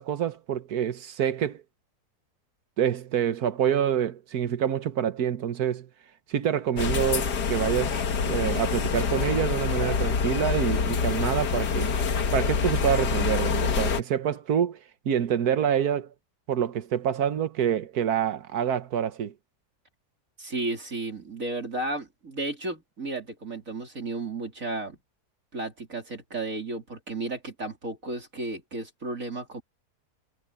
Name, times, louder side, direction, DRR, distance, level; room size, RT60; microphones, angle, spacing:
voice 1, 0.0-1.6 2.8-5.9 6.3-11.9 12.3-14.8 15.0-16.1 16.5-19.3, right 9 dB, 70° right, 1.6 m, -27 dB
sound 1, 6.8-14.0, left 5 dB, 80° left, 2.0 m, -26 dB
voice 2, 20.4-25.0 25.5-29.6, right 2 dB, 55° right, 3.9 m, -33 dB
omnidirectional pair, 1.7 m